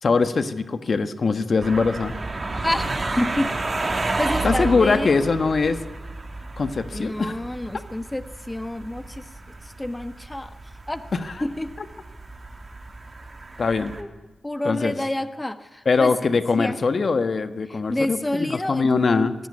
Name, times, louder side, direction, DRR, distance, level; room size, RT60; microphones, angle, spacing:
voice 1, 0.0-2.1 4.4-5.8 6.6-7.4 11.1-11.4 11.8-11.9 13.6-13.9 14.6-14.9 15.8-19.3, left 4 dB, 55° left, 10 dB, 1.4 m, -22 dB
sound 1, 1.6-14.0, right 2 dB, 40° right, 3.0 m, -31 dB
voice 2, 2.5-2.9 3.2-3.5 4.2-5.1 6.9-9.2 9.8-10.5 10.9-11.0 11.4-11.7 14.0-14.1 14.4-16.1 16.5-16.8 17.9-19.3, left 1 dB, 15° left, 11 dB, 1.2 m, -28 dB
16.5 x 16.5 x 9.8 m, 1.1 s
supercardioid pair, 45°, 0 cm